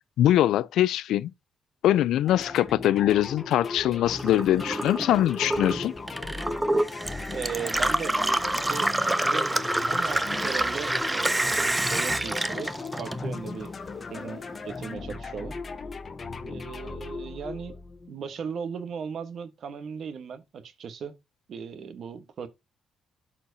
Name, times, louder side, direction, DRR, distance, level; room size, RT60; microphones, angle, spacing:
voice 1, 0.2-1.3 1.8-5.9, left 12 dB, 80° left, 0.3 m, -22 dB
sound 1, 2.2-18.2, left 4 dB, 35° left, 0.8 m, -38 dB
Gurgling / Water tap faucet / Sink (filling or washing), 4.1-13.6 14.0-14.8, right 1 dB, 15° right, 0.5 m, -27 dB
voice 2, 7.3-12.7 13.0-13.7 14.1-15.6 16.4-17.8 18.1-21.2 21.5-22.5, right 6 dB, 60° right, 1.1 m, -37 dB
12.5 x 4.4 x 2.6 m
cardioid pair, 90°, 0 cm